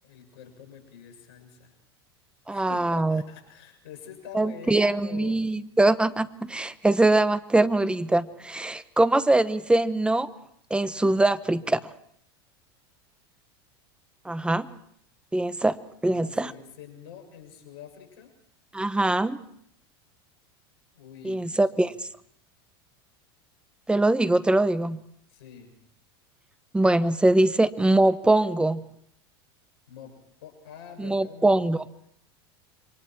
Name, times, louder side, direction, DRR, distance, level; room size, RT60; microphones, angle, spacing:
voice 1, 0.0-1.7 2.5-5.5 16.1-18.3 20.9-21.9 25.3-25.7 29.9-30.1 30.4-31.6, left 8 dB, 75° left, 5 dB, 6.9 m, -45 dB
voice 2, 2.5-3.2 4.3-10.3 10.7-11.9 14.2-14.7 15.3-15.8 16.0-16.5 18.7-19.4 21.2-21.9 23.9-25.0 26.7-28.8 31.0-31.8, right 2 dB, 5° right, 15 dB, 1.0 m, -22 dB
28.0 x 24.0 x 4.6 m, 0.68 s
hypercardioid pair, 100°, 13 cm